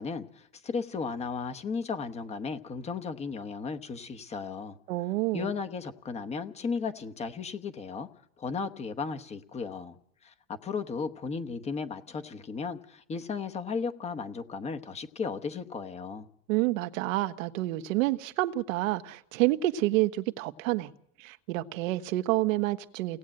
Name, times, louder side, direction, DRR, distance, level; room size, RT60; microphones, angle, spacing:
voice 1, 0.0-4.8 5.3-8.1 8.4-9.9 10.2-16.3, left 5 dB, 15° left, 8 dB, 1.0 m, -35 dB
voice 2, 4.9-5.5 16.5-20.9 21.2-23.2, right 17 dB, 80° right, 9 dB, 1.3 m, -28 dB
29.0 x 18.0 x 8.8 m, 0.76 s
supercardioid pair, 170°, 39 cm